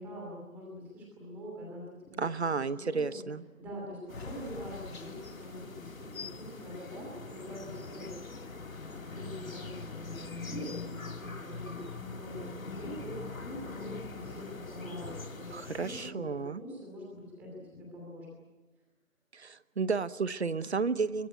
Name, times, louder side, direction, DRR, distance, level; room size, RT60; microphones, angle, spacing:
voice 1, 0.0-3.2 3.6-11.8 12.2-18.3, equal, 5° right, -2 dB, 2.6 m, -44 dB
voice 2, 2.2-3.4 15.5-16.6 19.3-21.3, right 4 dB, 50° right, 16 dB, 1.0 m, -32 dB
sound 1, 4.1-16.1, left 3 dB, 75° left, 2.1 m, -43 dB
sound 2, 4.1-10.3, left 3 dB, 50° left, 3.2 m, -52 dB
23.5 x 18.0 x 9.4 m, 1.2 s
figure-of-eight pair, 170°, 41 cm